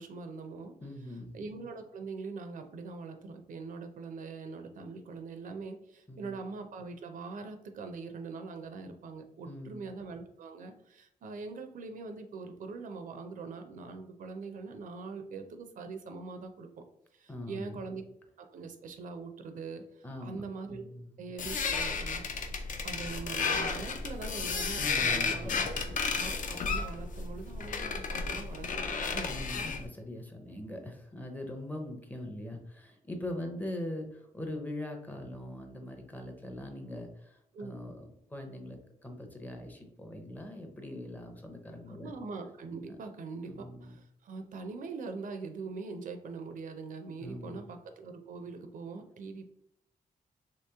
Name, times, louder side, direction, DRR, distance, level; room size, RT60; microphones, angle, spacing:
voice 1, 0.0-0.7 1.3-16.8 17.1-18.0 18.4-20.9 21.2-22.2 22.8-25.6 26.1-29.5 33.4-33.6 37.5-37.7 41.9-49.5, right 4 dB, 65° right, 7 dB, 0.5 m, -42 dB
voice 2, 0.8-1.3 6.1-6.4 9.4-9.9 17.3-17.8 20.0-20.4 20.7-21.1 24.8-25.9 29.3-42.1 43.5-43.9 47.2-47.6, left 1 dB, 10° left, 3 dB, 0.5 m, -42 dB
sound 1, 21.4-29.9, left 4 dB, 65° left, 0.5 m, -33 dB
3.0 x 2.9 x 3.4 m, 0.74 s
wide cardioid pair, 140°, 15 cm